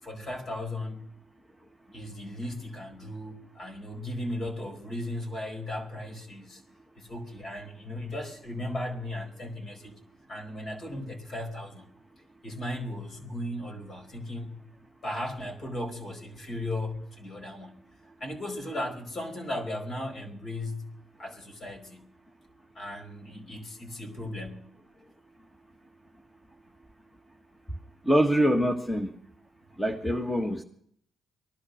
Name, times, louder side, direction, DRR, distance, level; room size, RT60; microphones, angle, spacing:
voice 1, 0.0-1.0 1.9-6.6 7.0-9.9 10.3-11.9 12.4-14.7 15.0-17.7 18.2-20.9 21.2-22.0 22.7-24.7, left 1 dB, 45° left, 4.8 m, -36 dB
voice 2, 28.0-29.1 29.8-30.6, equal, 5° left, 1.5 m, -24 dB
18.5 x 12.0 x 6.4 m
cardioid pair, 90°, 0 cm